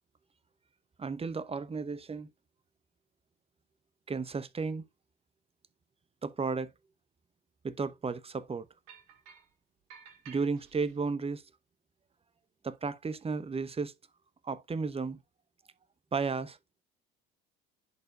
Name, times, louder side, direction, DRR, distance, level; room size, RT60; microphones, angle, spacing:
voice 1, 1.0-2.3 4.1-4.9 6.2-6.7 7.6-8.7 10.3-11.4 12.6-13.9 14.4-15.2 16.1-16.6, right 4 dB, 20° right, 0.8 m, -33 dB
sound 1, 8.9-9.5 9.9-11.0, right 7 dB, 65° right, 1.9 m, -53 dB
10.5 x 4.5 x 2.3 m
hypercardioid pair, 65°, 30 cm